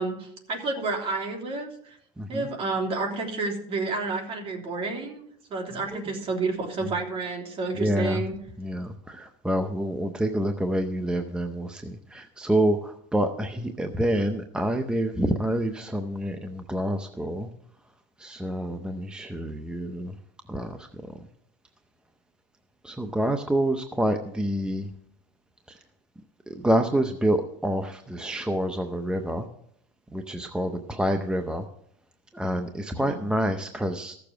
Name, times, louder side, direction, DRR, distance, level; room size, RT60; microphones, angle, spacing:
voice 1, 0.0-2.0 2.3-5.2 5.5-8.3 33.0-33.2, right 3 dB, 35° right, 1 dB, 3.2 m, -30 dB
voice 2, 2.2-2.5 5.7-6.0 6.8-6.9 7.7-8.2 8.6-17.5 18.2-20.2 20.5-21.3 22.8-24.9 25.7-25.8 26.5-29.5 30.1-31.6 32.3-34.1, right 1 dB, 5° right, 6 dB, 0.7 m, -27 dB
15.0 x 6.9 x 6.2 m, 0.70 s
cardioid pair, 135°, 16 cm